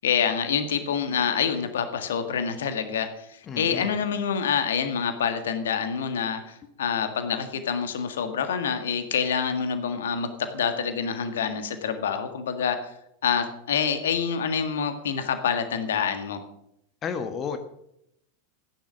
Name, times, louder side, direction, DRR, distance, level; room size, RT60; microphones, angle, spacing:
voice 1, 0.0-3.3 3.6-12.8 13.2-16.4, left 7 dB, 60° left, 8 dB, 1.7 m, -27 dB
voice 2, 3.5-3.9 17.0-17.6, left 6 dB, 25° left, 8 dB, 1.3 m, -32 dB
15.0 x 10.5 x 6.3 m, 0.78 s
figure-of-eight pair, 90°, 0 cm